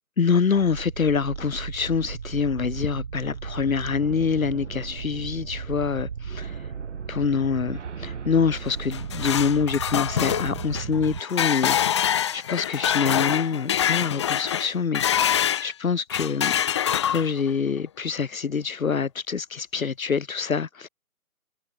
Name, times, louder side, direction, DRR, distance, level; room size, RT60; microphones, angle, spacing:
voice 1, 0.2-6.7 7.1-16.5 17.0-20.9, left 6 dB, 70° left, 2.0 m, -26 dB
sound 1, 0.6-11.2, right 6 dB, 50° right, 3.6 m, -35 dB
sound 2, 8.7-15.7 16.1-17.5, left 9 dB, 20° left, 1.2 m, -25 dB
hypercardioid pair, 165°, 43 cm